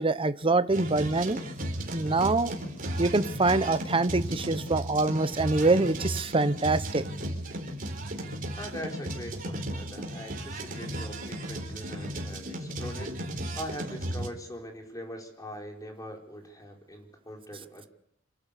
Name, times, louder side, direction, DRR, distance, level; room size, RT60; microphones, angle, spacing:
voice 1, 0.0-1.4 1.9-2.5 3.0-7.0, right 3 dB, 25° right, 12 dB, 0.8 m, -25 dB
sound 1, 0.7-14.3, right 1 dB, 45° right, 4.1 m, -35 dB
voice 2, 8.6-13.1 13.5-17.9, equal, 15° left, 2 dB, 4.4 m, -42 dB
27.5 x 12.0 x 8.4 m, 0.73 s
head